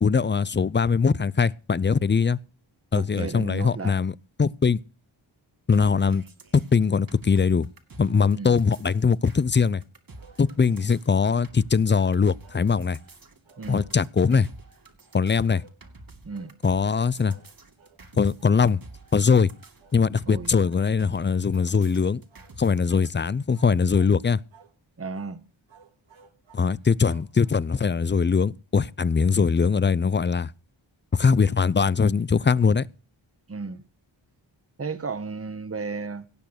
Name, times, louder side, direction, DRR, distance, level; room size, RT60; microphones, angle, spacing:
voice 1, 0.0-2.4 2.9-4.1 4.4-4.8 5.7-6.2 6.5-7.7 8.0-9.8 10.4-13.0 13.7-14.5 15.1-15.6 16.6-17.4 18.2-18.8 19.1-19.5 19.9-22.2 22.6-24.4 26.5-30.5 31.1-32.9, left 5 dB, 25° left, 0.5 m, -21 dB
voice 2, 2.9-3.9 8.3-8.5 13.6-13.8 16.2-16.5 20.3-20.5 25.0-25.4 33.5-33.8 34.8-36.2, right 4 dB, 30° right, 1.3 m, -33 dB
sound 1, 5.7-23.1, right 2 dB, 45° right, 2.6 m, -49 dB
sound 2, 10.2-10.9 11.9-13.0 13.4-14.5 15.5-15.8 16.3-16.6 17.3-17.5 17.8-18.0 18.4-18.6 19.3-19.5 19.8-20.1 20.6-20.9 21.5-21.8 22.3-22.6 22.9-23.1 23.5-24.2 24.5-24.8 25.1-25.4 25.7-27.8, right 5 dB, 70° right, 2.4 m, -56 dB
17.5 x 6.7 x 6.6 m
cardioid pair, 55°, 48 cm